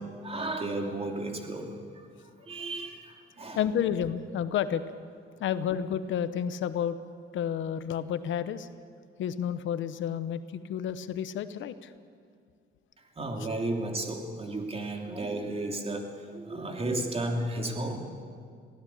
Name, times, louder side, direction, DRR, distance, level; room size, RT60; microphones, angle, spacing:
voice 1, 0.0-2.1 2.4-3.6 13.2-18.0, right 2 dB, 30° right, 3 dB, 3.0 m, -33 dB
voice 2, 3.5-4.8 5.4-7.0 7.3-8.7 9.2-11.9, left 9 dB, 75° left, 12 dB, 1.0 m, -30 dB
22.0 x 16.0 x 8.7 m, 2.2 s
cardioid pair, 90°, 20 cm